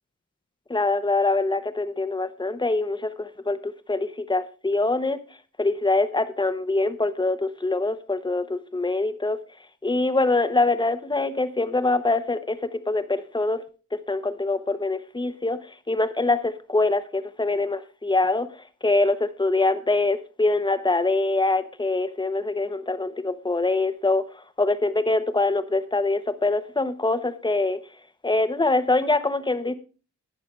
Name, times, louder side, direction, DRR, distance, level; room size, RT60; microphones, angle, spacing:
voice 1, 0.7-5.2 5.6-9.4 9.8-13.6 13.9-15.6 15.9-18.5 18.8-24.2 24.6-27.8 28.2-29.7, left 2 dB, 15° left, 11 dB, 1.0 m, -24 dB
19.5 x 6.8 x 3.3 m, 0.34 s
wide cardioid pair, 130°, 32 cm